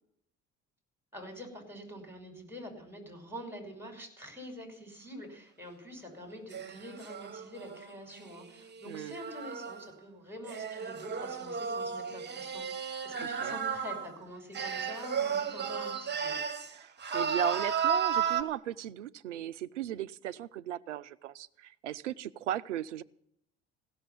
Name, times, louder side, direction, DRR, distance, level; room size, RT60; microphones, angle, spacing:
voice 1, 1.1-16.4, equal, 5° right, 3 dB, 5.9 m, -46 dB
sound 1, 6.5-9.9 10.5-14.1 14.5-16.7 17.0-18.4, right 7 dB, 30° right, 1.5 m, -34 dB
voice 2, 8.9-9.2 13.4-13.6 16.7-23.0, right 11 dB, 90° right, 15 dB, 0.5 m, -37 dB
16.0 x 7.0 x 9.4 m, 0.73 s
hypercardioid pair, 55°, 35 cm